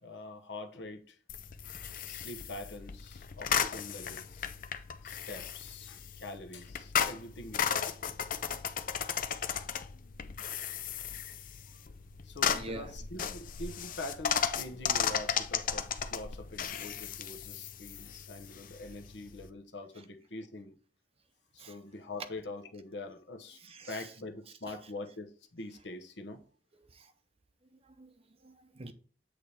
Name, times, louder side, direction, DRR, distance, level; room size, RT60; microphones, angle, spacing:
voice 1, 0.0-1.2 2.0-4.5 5.0-8.0 12.2-20.7 21.5-26.4, left 2 dB, 70° left, 1.0 m, -44 dB
sound 1, 1.3-19.5, left 8 dB, 50° left, 0.5 m, -35 dB
voice 2, 12.4-13.0 20.0-20.1 21.6-21.8 23.6-24.1 24.7-24.8 26.8-27.1 27.7-28.9, right 2 dB, 35° right, 0.6 m, -48 dB
8.4 x 3.4 x 4.2 m
head